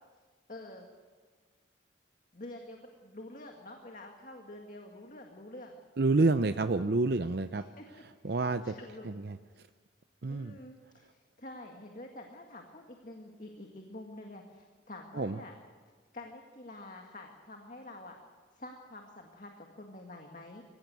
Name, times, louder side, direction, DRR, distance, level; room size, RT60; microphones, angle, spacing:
voice 1, 0.5-0.9 2.3-5.8 6.2-6.5 7.5-9.1 9.6-9.7 10.3-15.5 16.1-18.2 18.5-20.6, left 1 dB, 45° left, 2 dB, 1.9 m, -48 dB
voice 2, 6.0-7.6 8.2-8.7 9.0-9.4 10.2-10.6 15.2-15.4, right 3 dB, 55° right, 10 dB, 0.6 m, -28 dB
24.0 x 16.0 x 9.3 m, 1.5 s
head